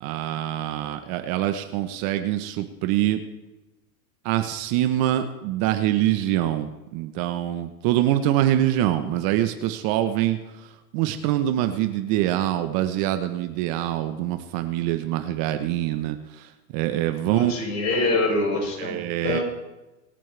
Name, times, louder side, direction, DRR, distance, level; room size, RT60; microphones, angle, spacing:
voice 1, 0.0-3.2 4.2-10.4 10.9-16.5 16.7-17.5 18.8-19.4, right 13 dB, 45° right, 8 dB, 1.2 m, -24 dB
voice 2, 17.2-19.4, left 2 dB, 35° left, -1 dB, 6.2 m, -25 dB
26.5 x 9.1 x 3.4 m, 1.1 s
hypercardioid pair, 115°, 48 cm